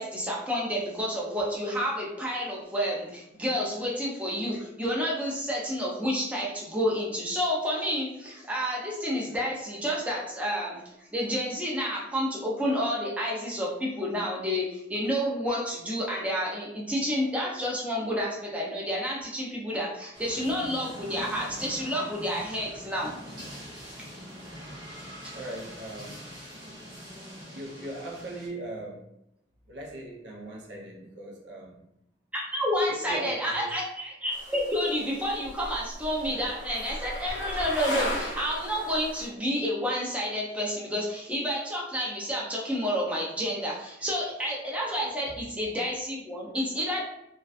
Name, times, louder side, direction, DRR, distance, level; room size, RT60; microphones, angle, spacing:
voice 1, 0.0-23.1 25.2-25.3 32.3-47.0, equal, 10° right, -4 dB, 0.5 m, -30 dB
sound 1, 20.1-28.5, equal, 25° right, 0.9 m, -43 dB
voice 2, 25.3-26.2 27.5-29.0 29.7-31.7 32.9-33.7, right 1 dB, 80° right, -1 dB, 0.6 m, -39 dB
sound 2, 34.3-39.3, left 1 dB, 90° left, 0.6 m, -36 dB
2.4 x 2.3 x 2.4 m, 0.81 s
head